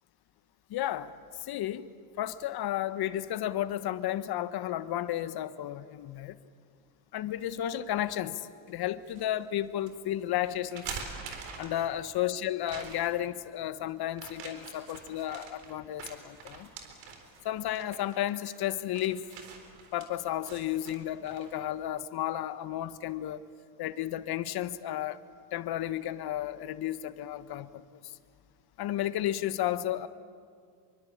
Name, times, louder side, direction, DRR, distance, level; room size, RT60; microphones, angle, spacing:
voice 1, 0.7-1.1 1.4-1.9 2.2-6.4 7.1-10.9 11.6-16.7 17.4-19.3 19.9-23.4 23.8-25.2 25.5-27.8 28.8-30.1, left 12 dB, 55° left, 1.3 m, -33 dB
sound 1, 8.7-9.3 9.8-9.9 10.6-12.1 12.6-13.2 14.1-21.6, right 6 dB, 70° right, 4.1 m, -45 dB
25.0 x 23.5 x 8.6 m
hypercardioid pair, 75°, 46 cm